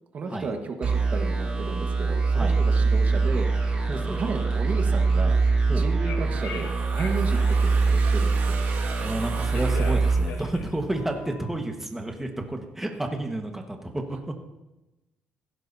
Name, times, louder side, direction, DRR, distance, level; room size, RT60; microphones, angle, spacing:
voice 1, 0.1-3.5 3.9-5.4 5.7-8.6, right 4 dB, 45° right, 4 dB, 1.5 m, -33 dB
sound 1, 0.8-11.1, right 4 dB, 25° right, 5.8 m, -24 dB
voice 2, 2.3-2.6 3.9-4.3 5.7-5.9 9.0-14.2, right 1 dB, 10° right, 3 dB, 1.5 m, -31 dB
Telephone, 5.9-8.4 9.2-11.6, left 6 dB, 75° left, 1.8 m, -41 dB
sound 2, 6.1-11.0, right 6 dB, 70° right, 2.3 m, -40 dB
16.5 x 16.0 x 2.8 m, 0.98 s
cardioid pair, 120°, 4 cm